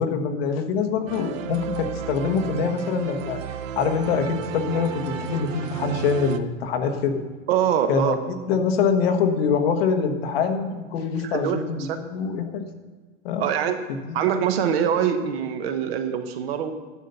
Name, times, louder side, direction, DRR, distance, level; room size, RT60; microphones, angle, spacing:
voice 1, 0.0-3.4 3.8-7.2 7.9-12.6 13.2-13.5 14.0-14.2, left 6 dB, 50° left, 5 dB, 1.3 m, -24 dB
sound 1, 1.1-6.4, right 9 dB, 85° right, 0.9 m, -33 dB
voice 2, 7.5-8.1 11.2-12.0 13.4-13.9 14.1-16.7, right 8 dB, 50° right, 8 dB, 1.2 m, -24 dB
11.0 x 6.7 x 6.8 m, 1.4 s
supercardioid pair, 170°, 38 cm